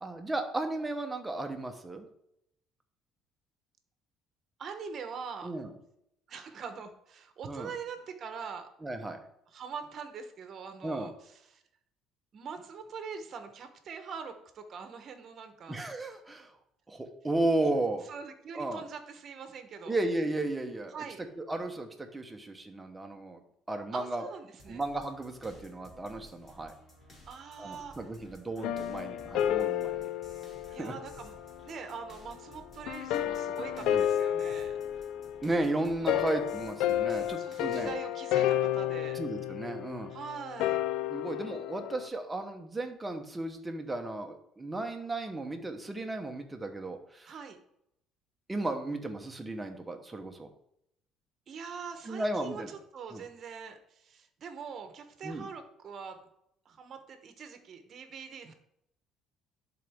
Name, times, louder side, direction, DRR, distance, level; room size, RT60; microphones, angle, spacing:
voice 1, 0.0-2.1 5.4-5.7 7.5-7.7 8.8-9.2 10.8-11.1 15.7-16.5 16.9-18.1 18.5-18.8 19.9-20.9 21.4-23.4 23.7-24.2 24.7-26.7 27.6-30.0 30.8-30.9 33.8-34.0 35.4-37.9 39.2-40.1 41.1-47.3 48.5-50.5 52.1-52.7 53.1-53.2 55.2-55.5, right 2 dB, 15° right, 4 dB, 1.0 m, -34 dB
voice 2, 4.6-5.5 6.3-8.7 9.5-11.6 12.3-15.8 18.1-20.0 20.9-21.2 23.9-24.8 27.2-28.1 30.7-31.4 31.6-34.8 36.0-36.3 37.4-39.2 40.1-40.8 47.3-47.6 51.5-56.2 56.6-58.5, right 6 dB, 45° right, 7 dB, 1.0 m, -43 dB
sound 1, 24.6-37.9, left 1 dB, 35° left, 2.7 m, -55 dB
sound 2, 28.6-31.5 32.9-42.1, left 11 dB, 75° left, 0.4 m, -31 dB
11.0 x 3.9 x 3.6 m, 0.76 s
cardioid pair, 120°, 0 cm